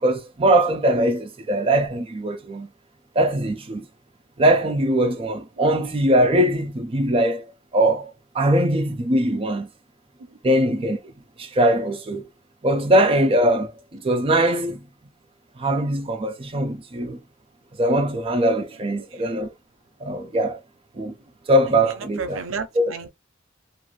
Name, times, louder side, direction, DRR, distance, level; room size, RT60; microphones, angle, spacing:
voice 1, 0.0-2.7 3.2-3.9 4.4-7.4 7.7-9.7 10.4-11.0 11.4-12.3 12.6-14.9 15.6-17.2 17.8-19.5 20.0-20.6 21.0-21.1 21.5-22.4 22.8-22.9, right 1 dB, 30° right, 0.5 m, -21 dB
voice 2, 18.9-19.2 22.0-23.1, right 5 dB, 75° right, 0.5 m, -33 dB
2.5 x 2.5 x 3.1 m
head